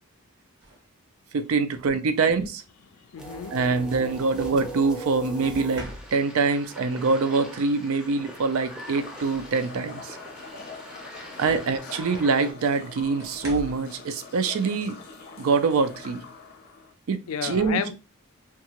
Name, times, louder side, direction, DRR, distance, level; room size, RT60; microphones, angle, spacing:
sound 1, 0.6-0.9 2.2-2.5 5.5-6.5 8.3-8.4 8.8-9.9 10.4-10.7 12.0-12.1 13.2-13.9 15.6-15.8 16.3-16.6, right 1 dB, 50° right, 0.9 m, -43 dB
voice 1, 1.3-2.6 3.5-10.2 11.4-15.0 15.4-16.2 17.1-17.8, right 4 dB, 70° right, 0.4 m, -24 dB
voice 2, 3.1-3.5 11.3-11.7 17.3-18.0, left 8 dB, 75° left, 0.3 m, -32 dB
sound 2, 3.2-12.5, right 1 dB, 5° right, 0.5 m, -41 dB
sound 3, 8.3-16.9, left 4 dB, 50° left, 0.7 m, -44 dB
2.7 x 2.3 x 2.9 m
head